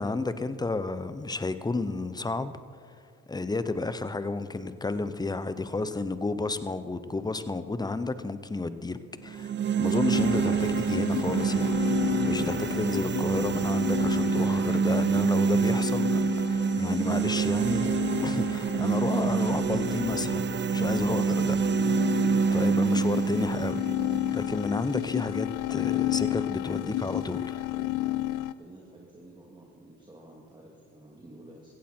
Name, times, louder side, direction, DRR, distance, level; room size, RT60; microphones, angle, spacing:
voice 1, 0.0-2.5 3.3-9.5 9.8-11.7 12.0-16.2 16.5-17.9 18.2-22.0 22.5-23.8 24.3-27.7, left 3 dB, 15° left, 12 dB, 0.8 m, -31 dB
sound 1, 9.3-25.3, right 6 dB, 40° right, 0.6 m, -27 dB
sound 2, 10.1-28.5, left 16 dB, 85° left, 0.5 m, -32 dB
voice 2, 27.7-28.2 28.6-31.7, right 1 dB, 15° right, -4 dB, 2.5 m, -49 dB
16.0 x 15.0 x 4.5 m, 2.1 s
cardioid pair, 90°, 30 cm